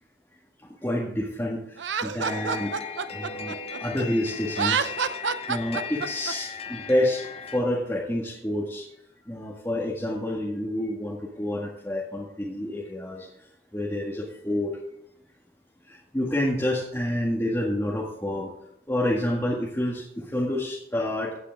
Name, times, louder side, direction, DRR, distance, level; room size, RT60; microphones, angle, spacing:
voice 1, 0.8-2.7 3.1-4.9 5.2-8.9 9.3-13.3 13.7-14.8 15.9-18.5 18.9-21.4, left 1 dB, 15° left, -4 dB, 1.7 m, -28 dB
Laughter, 1.8-4.0 4.5-6.3, right 6 dB, 75° right, 0.7 m, -28 dB
sound 1, 2.2-7.6, left 6 dB, 30° left, 0.9 m, -37 dB
15.5 x 8.3 x 3.6 m, 0.76 s
head